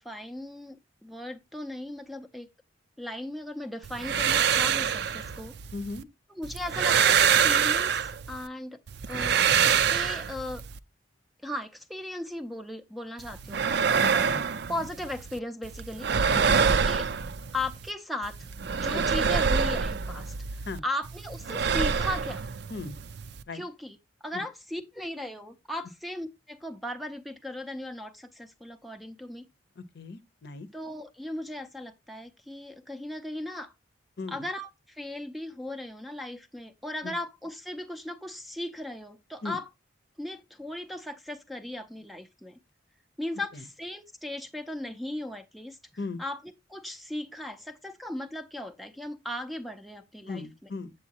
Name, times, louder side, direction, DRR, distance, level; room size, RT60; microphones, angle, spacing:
voice 1, 0.0-2.5 3.0-5.5 6.3-8.8 9.1-10.6 11.4-13.8 14.7-16.1 16.9-17.0 17.5-18.5 18.7-22.4 23.5-24.0 24.2-29.5 30.7-33.7 34.3-39.7 40.2-42.6 43.2-46.4 46.7-50.7, left 1 dB, ahead, 0.5 m, -37 dB
sound 1, 3.8-6.0 6.4-8.5 8.9-10.8 13.2-15.4 15.6-17.9 18.2-20.8 21.0-23.4, right 7 dB, 55° right, 0.4 m, -26 dB
voice 2, 5.7-6.0 14.0-14.4 16.5-16.7 18.9-19.0 20.7-20.8 22.7-23.0 23.5-23.6 24.3-24.4 29.8-30.7 34.2-34.4 37.0-37.1 39.4-39.6 46.0-46.2 50.3-50.9, left 3 dB, 55° left, 0.8 m, -37 dB
8.0 x 7.4 x 2.8 m
head